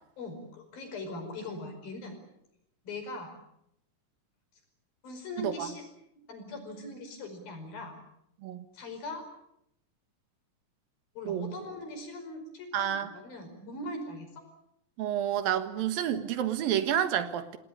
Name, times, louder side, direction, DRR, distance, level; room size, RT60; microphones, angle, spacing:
voice 1, 0.2-2.2 2.8-3.3 5.0-5.8 6.3-7.9 8.7-9.2 11.1-14.3, left 2 dB, 85° left, 5 dB, 6.8 m, -40 dB
voice 2, 5.4-5.7 8.4-8.6 11.2-11.5 12.7-13.1 15.0-17.6, right 10 dB, 80° right, 11 dB, 3.3 m, -29 dB
28.0 x 19.0 x 8.8 m, 0.79 s
omnidirectional pair, 4.0 m